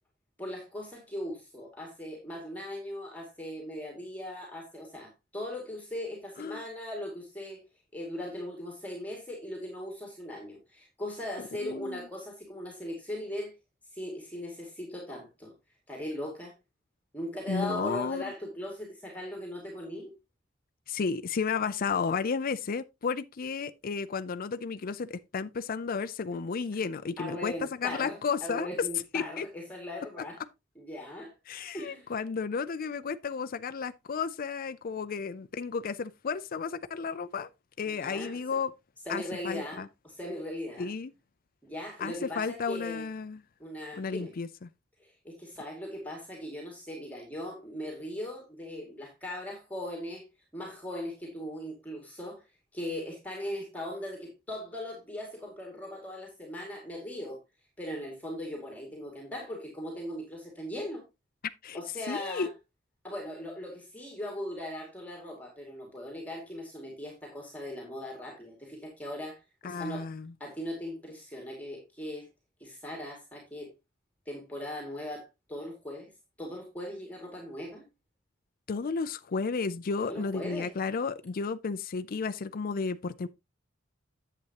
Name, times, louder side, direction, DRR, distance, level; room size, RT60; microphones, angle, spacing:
voice 1, 0.4-7.6 7.9-13.5 13.9-15.5 15.9-16.5 17.1-20.1 27.2-30.4 30.8-31.3 31.7-32.1 38.0-38.6 39.1-40.9 41.6-43.1 43.6-44.3 45.0-50.3 50.5-52.4 52.7-57.4 57.8-61.0 61.7-62.5 63.0-70.0 70.4-72.3 72.6-73.7 74.3-76.1 76.4-77.9 80.0-80.7, left 1 dB, 10° left, 2.3 m, -39 dB
voice 2, 11.6-12.0 17.5-18.3 20.9-27.5 27.8-28.7 29.1-29.5 31.5-37.5 37.8-38.7 39.1-39.9 40.8-41.1 42.0-43.4 44.0-44.7 61.6-61.8 62.1-62.5 69.6-70.3 78.7-83.3, left 5 dB, 45° left, 0.5 m, -33 dB
10.5 x 7.7 x 2.9 m
head